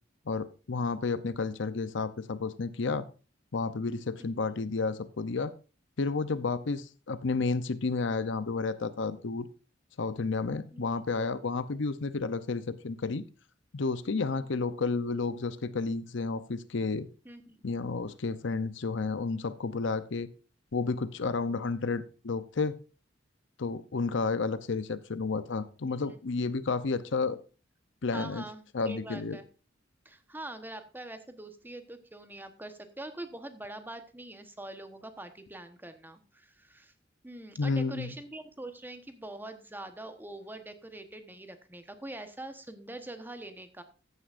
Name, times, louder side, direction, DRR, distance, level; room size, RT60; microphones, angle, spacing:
voice 1, 0.3-3.1 3.5-5.5 6.0-9.5 10.0-13.2 13.7-17.1 17.6-20.3 20.7-22.7 23.6-27.4 28.0-28.4 28.7-29.4 37.6-38.1, left 4 dB, 70° left, 14 dB, 0.7 m, -31 dB
voice 2, 14.3-14.7 17.2-17.5 25.8-26.0 28.1-29.4 30.0-36.9 37.2-43.8, right 1 dB, 10° right, 8 dB, 1.1 m, -44 dB
14.0 x 9.6 x 2.5 m, 0.34 s
head